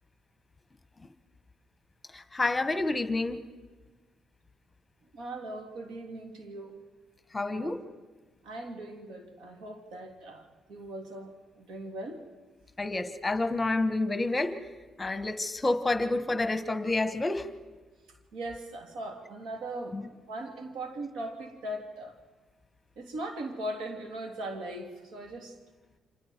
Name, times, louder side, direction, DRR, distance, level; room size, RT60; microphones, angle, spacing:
voice 1, 2.1-3.4 7.3-7.8 12.8-14.5 15.0-17.5 19.9-20.0, left 2 dB, 20° left, 9 dB, 1.4 m, -29 dB
voice 2, 5.1-6.8 7.5-7.8 8.4-12.2 18.1-22.2 23.0-25.6, right 1 dB, 90° right, 3 dB, 3.2 m, -39 dB
29.5 x 25.5 x 4.6 m, 1.3 s
cardioid pair, 90°, 0 cm